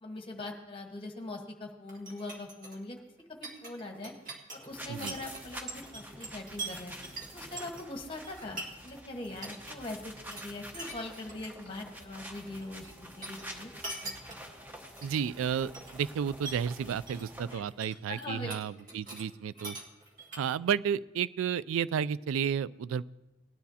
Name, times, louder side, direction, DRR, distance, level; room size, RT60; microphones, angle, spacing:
voice 1, 0.0-3.0 3.4-4.1 4.5-6.9 7.3-13.7 17.5-17.6 18.1-18.6 18.8-18.9, left 2 dB, 25° left, 3 dB, 1.3 m, -42 dB
sound 1, 1.9-9.0 9.2-9.7 10.0-11.5 11.8-12.9 13.2-15.3 15.7-16.1 16.4-17.3 17.6-19.3 19.5-20.7, right 2 dB, 40° right, 1.8 m, -43 dB
sound 2, 4.7-17.6, equal, 10° right, 0.9 m, -48 dB
voice 2, 15.0-19.8 20.4-23.0, right 8 dB, 80° right, 19 dB, 0.3 m, -32 dB
18.5 x 10.5 x 2.8 m, 1.0 s
head